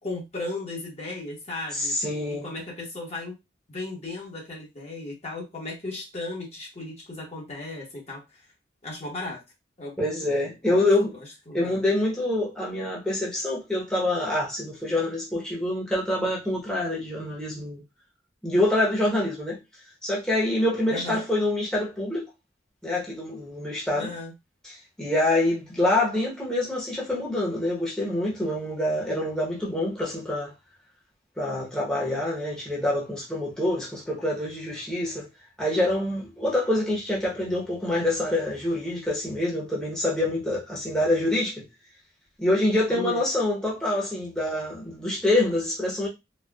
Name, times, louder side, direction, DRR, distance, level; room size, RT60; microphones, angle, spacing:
voice 1, 0.0-1.9 2.3-3.4 3.7-8.4 8.8-9.4 9.8-10.0 10.7-10.8 11.5-11.8 20.9-21.2 23.9-24.3 42.9-43.2, left 2 dB, 35° left, 1.1 m, -35 dB
voice 2, 1.7-2.5 10.0-11.1 11.5-17.8 18.4-19.6 20.0-22.3 22.8-24.1 24.6-30.5 31.4-35.3 35.6-41.6 42.4-46.1, left 1 dB, 5° left, 0.9 m, -26 dB
4.1 x 2.2 x 2.3 m
head